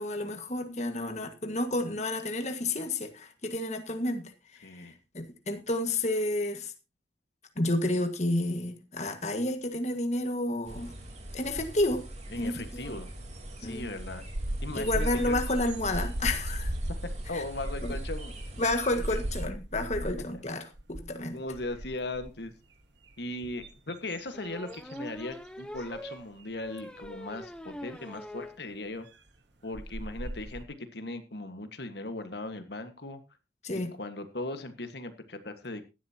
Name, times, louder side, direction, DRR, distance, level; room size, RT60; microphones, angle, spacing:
voice 1, 0.0-6.7 7.6-10.9 11.3-12.0 12.4-12.9 13.6-13.9 14.7-16.7 17.3-17.4 17.8-17.9 18.6-21.4 33.6-33.9, left 1 dB, 40° left, 1.7 m, -31 dB
voice 2, 4.6-5.0 12.3-13.1 13.6-14.2 14.6-15.4 17.3-18.3 19.1-19.2 21.0-22.5 23.2-29.1 29.6-33.2 34.0-35.8, left 2 dB, 65° left, 1.6 m, -38 dB
sound 1, 10.6-19.4, right 1 dB, 40° right, 3.6 m, -42 dB
sound 2, 14.3-20.4 20.7-21.1 21.5-22.5 23.1-25.3 25.7-26.0 27.0-27.1 29.3-29.4 29.7-30.6, right 1 dB, 80° right, 1.5 m, -36 dB
sound 3, 22.6-22.7 23.0-23.1 24.3-28.6 29.0-29.1 29.4-29.5 29.6-29.9, equal, 5° left, 0.8 m, -43 dB
17.0 x 12.0 x 2.9 m
head